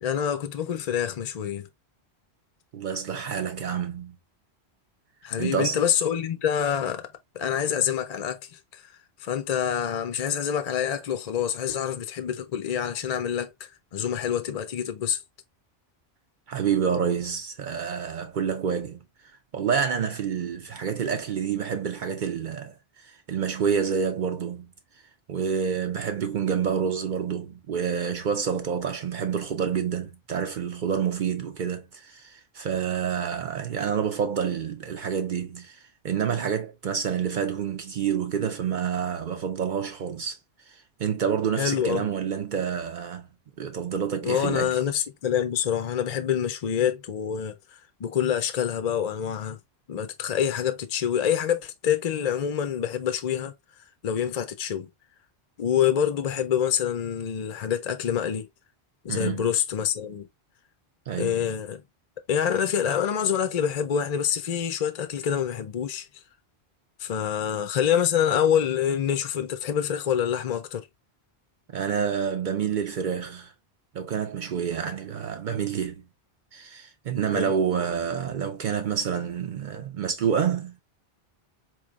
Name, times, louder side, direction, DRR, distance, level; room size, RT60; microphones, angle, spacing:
voice 1, 0.0-1.7 5.2-8.9 9.2-15.2 41.6-42.1 44.2-49.6 49.9-53.5 54.0-54.9 55.6-58.5 59.0-60.3 61.2-61.8 62.3-66.2 67.0-70.9 77.3-77.5, left 9 dB, 50° left, 0.5 m, -26 dB
voice 2, 2.7-4.1 5.4-5.8 16.5-19.0 19.5-24.7 25.3-40.4 40.7-43.3 43.6-44.7 59.1-59.5 61.1-61.5 71.7-73.5 73.9-76.0 76.5-80.8, right 7 dB, 55° right, 0.6 m, -28 dB
4.1 x 3.0 x 2.4 m
omnidirectional pair, 1.1 m